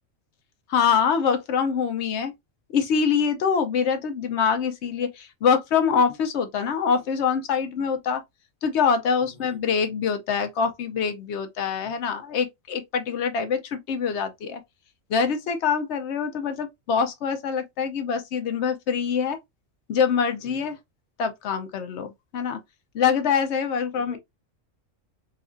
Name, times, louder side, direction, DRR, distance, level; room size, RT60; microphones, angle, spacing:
voice 1, 0.7-2.3 2.7-8.2 8.6-14.6 15.1-19.4 19.9-20.8 21.2-22.6 22.9-24.2, left 6 dB, 65° left, 0.9 m, -24 dB
voice 2, 9.2-9.6 20.4-20.8 23.9-24.2, left 1 dB, 40° left, 1.1 m, -47 dB
3.9 x 2.4 x 2.5 m
omnidirectional pair, 1.4 m